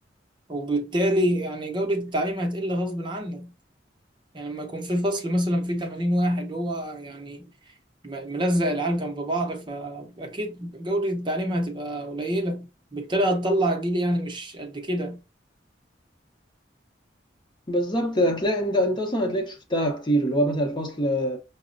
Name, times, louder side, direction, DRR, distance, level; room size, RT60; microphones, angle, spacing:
voice 1, 0.5-3.5 4.3-7.5 8.0-15.2, right 1 dB, 25° right, 0.7 m, -27 dB
voice 2, 17.7-21.4, equal, 25° left, 0.7 m, -24 dB
5.9 x 2.0 x 2.5 m
head